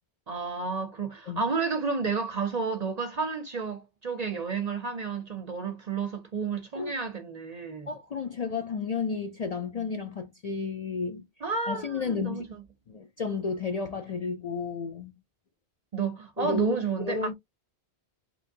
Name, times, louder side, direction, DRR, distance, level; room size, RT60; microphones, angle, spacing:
voice 1, 0.3-7.9 11.4-12.5 15.9-17.3, right 5 dB, 50° right, 0.5 m, -31 dB
voice 2, 7.9-11.3 11.7-12.5 12.9-15.1 16.4-17.3, left 5 dB, 50° left, 0.5 m, -32 dB
3.5 x 2.9 x 2.6 m
omnidirectional pair, 1.1 m